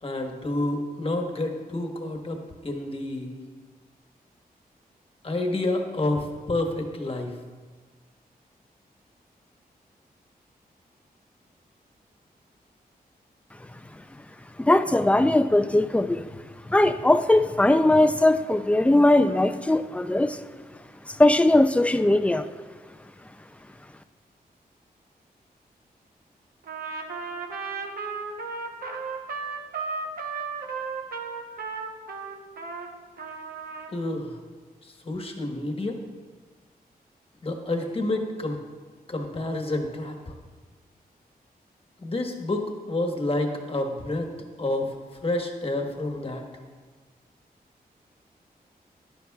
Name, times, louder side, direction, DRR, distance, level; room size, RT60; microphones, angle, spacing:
voice 1, 0.0-3.4 5.2-7.4 33.9-34.4 34.8-36.0 37.4-38.6 39.1-40.3 42.0-44.3 44.6-46.4, left 2 dB, 35° left, 3 dB, 1.2 m, -29 dB
voice 2, 14.6-16.3 16.7-20.4 21.1-22.5, left 1 dB, 10° left, 10 dB, 0.4 m, -20 dB
Trumpet, 26.6-32.9 33.2-33.9, right 4 dB, 70° right, 0.9 m, -34 dB
11.0 x 10.0 x 2.3 m, 1.4 s
cardioid pair, 80°, 16 cm